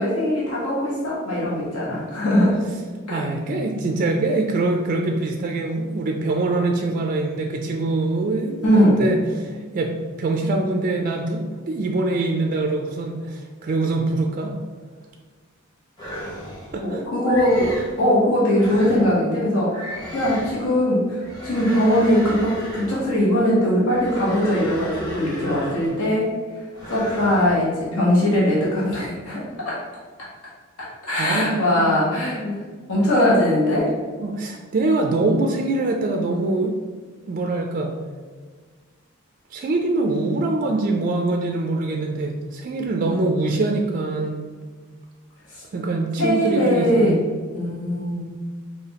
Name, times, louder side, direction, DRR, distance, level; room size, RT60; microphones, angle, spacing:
voice 1, 0.0-2.6 3.1-3.2 8.6-9.0 16.8-26.2 26.9-29.8 31.1-32.5 32.9-33.9 45.5-45.6 46.2-47.2 47.5-48.2, equal, 80° left, -7 dB, 1.2 m, -20 dB
voice 2, 3.1-14.5 16.7-17.0 31.2-31.9 34.2-36.7 37.3-37.9 39.5-44.4 45.7-47.2, right 2 dB, 40° right, 2 dB, 0.3 m, -24 dB
sound 1, 16.0-16.8 17.2-18.0 18.5-19.1 19.7-20.7 21.2-23.2 23.9-26.1 26.7-27.5, equal, 20° left, 1.1 m, -34 dB
4.8 x 2.7 x 2.9 m, 1.5 s
head